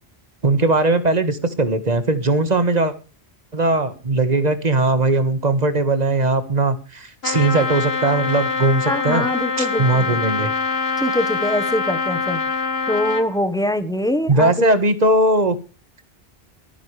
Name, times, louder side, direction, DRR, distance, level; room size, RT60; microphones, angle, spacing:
voice 1, 0.4-2.9 3.5-9.2 9.6-10.5 14.3-15.6, right 2 dB, 40° right, 12 dB, 1.6 m, -19 dB
Trumpet, 7.2-13.3, left 4 dB, 70° left, 1.5 m, -24 dB
voice 2, 8.9-10.2 11.0-12.4 12.9-14.6, left 1 dB, 5° left, 11 dB, 1.2 m, -23 dB
24.0 x 9.8 x 3.3 m, 0.33 s
omnidirectional pair, 1.1 m